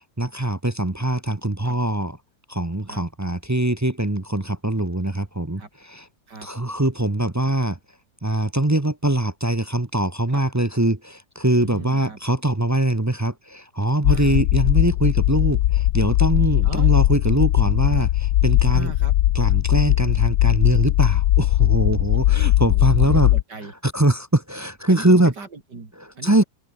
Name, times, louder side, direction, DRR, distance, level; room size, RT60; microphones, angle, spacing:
voice 1, 0.2-2.2 2.5-5.6 5.9-6.0 6.4-7.8 8.2-18.9 19.3-23.3 23.8-25.3 26.2-26.4, right 1 dB, 15° right, 0.8 m, -22 dB
voice 2, 11.6-12.2 14.0-14.4 16.6-16.9 18.7-19.1 22.1-23.7 24.9-26.4, right 4 dB, 80° right, 4.4 m, -38 dB
sound 1, 14.0-23.4, left 14 dB, 75° left, 1.1 m, -19 dB
omnidirectional pair, 1.8 m